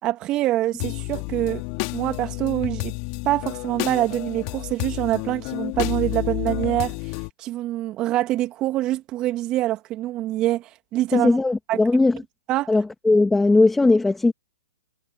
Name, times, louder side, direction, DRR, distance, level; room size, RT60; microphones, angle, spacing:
voice 1, 0.0-1.6 1.9-2.9 3.2-7.0 7.4-11.3 11.7-11.8 12.5-12.7, right 15 dB, 30° right, 2.2 m, -25 dB
sound 1, 0.8-7.3, left 30 dB, 40° left, 3.6 m, -30 dB
voice 2, 11.1-12.2 12.7-14.3, left 3 dB, 5° left, 2.7 m, -18 dB
hypercardioid pair, 125°, 3 cm